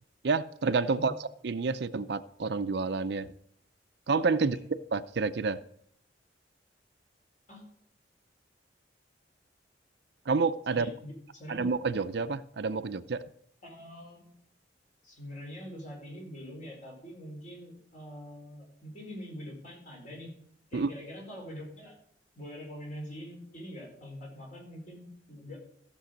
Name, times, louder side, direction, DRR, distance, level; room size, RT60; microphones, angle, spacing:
voice 1, 0.2-3.3 4.1-4.6 4.9-5.6 10.3-10.9 11.5-13.2 20.7-20.9, right 4 dB, 65° right, 12 dB, 0.5 m, -29 dB
voice 2, 10.7-11.7 13.6-14.3 15.0-20.3 20.7-22.0 22.4-25.6, equal, 45° left, 0 dB, 4.3 m, -44 dB
14.5 x 7.0 x 5.1 m, 0.67 s
head